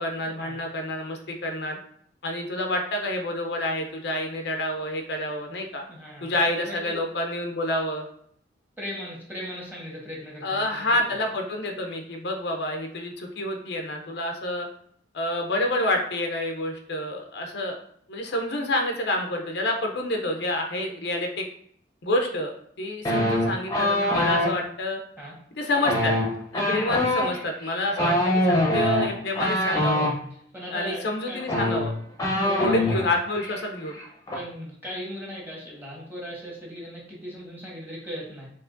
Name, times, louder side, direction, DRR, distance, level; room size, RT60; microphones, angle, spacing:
voice 1, 0.0-1.8 2.2-5.8 6.2-8.1 10.4-14.7 15.1-17.8 18.1-21.5 22.0-25.0 25.6-26.1 26.5-30.1 30.7-31.9 32.6-33.9, left 1 dB, 60° left, 3 dB, 0.6 m, -28 dB
voice 2, 5.9-6.9 8.8-11.0 25.2-25.3 29.7-29.9 30.5-31.4 32.3-32.9 34.3-38.5, equal, 10° right, -5 dB, 1.3 m, -38 dB
sound 1, 23.0-24.5 25.7-30.1 31.1-31.2 31.4-33.1 33.3-33.6 33.9-34.3, left 1 dB, 20° left, 0.8 m, -24 dB
4.8 x 3.0 x 2.5 m, 0.64 s
head